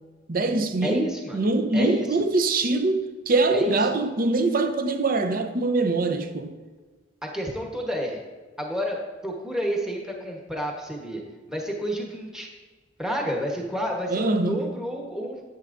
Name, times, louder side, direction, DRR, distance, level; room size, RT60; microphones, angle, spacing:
voice 1, 0.3-1.1 1.3-6.5 14.1-14.6, right 2 dB, 50° right, 0.6 m, -23 dB
voice 2, 0.8-1.4 1.7-2.2 3.5-3.7 7.2-8.2 8.6-11.2 11.5-12.5 13.0-15.4, equal, 5° right, 1.0 m, -30 dB
10.5 x 8.6 x 2.6 m
head